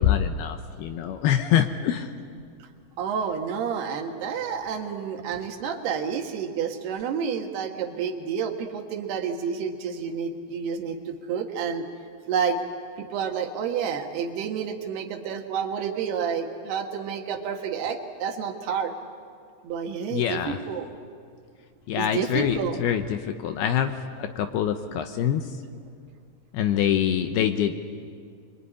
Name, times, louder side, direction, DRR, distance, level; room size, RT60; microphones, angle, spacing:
voice 1, 0.0-2.1 20.1-20.6 21.9-25.4 26.5-27.8, left 9 dB, 75° left, 8 dB, 2.6 m, -25 dB
voice 2, 3.0-11.8 12.3-12.6 13.0-18.9 19.6-20.9 22.0-22.8, right 7 dB, 70° right, 4 dB, 3.3 m, -29 dB
25.5 x 23.0 x 10.0 m, 2.2 s
omnidirectional pair, 5.2 m